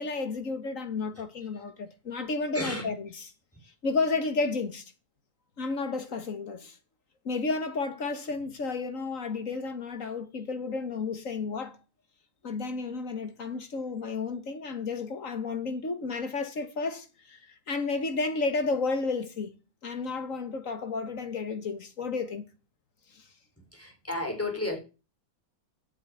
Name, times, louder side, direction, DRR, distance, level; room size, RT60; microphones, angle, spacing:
voice 1, 0.0-3.3 3.8-4.8 5.6-6.8 7.3-11.8 12.4-17.4 17.7-19.6 19.8-22.5 23.1-23.2, left 4 dB, 65° left, 2.0 m, -32 dB
voice 2, 2.5-2.9 23.7-24.8, left 2 dB, 10° left, 5.2 m, -32 dB
12.0 x 7.3 x 9.3 m
omnidirectional pair, 1.5 m